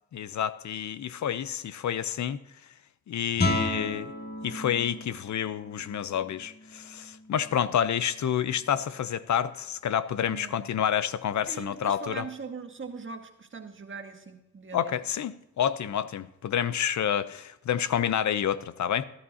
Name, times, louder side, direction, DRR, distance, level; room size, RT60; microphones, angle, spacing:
voice 1, 0.1-2.4 3.1-4.1 4.4-12.3 14.7-19.0, left 9 dB, 65° left, 0.7 m, -29 dB
Guitar, 3.3-8.9, left 2 dB, 30° left, 2.6 m, -34 dB
voice 2, 10.2-10.7 11.5-15.0, right 5 dB, 40° right, 1.8 m, -41 dB
17.5 x 11.5 x 2.9 m
supercardioid pair, 55°, 31 cm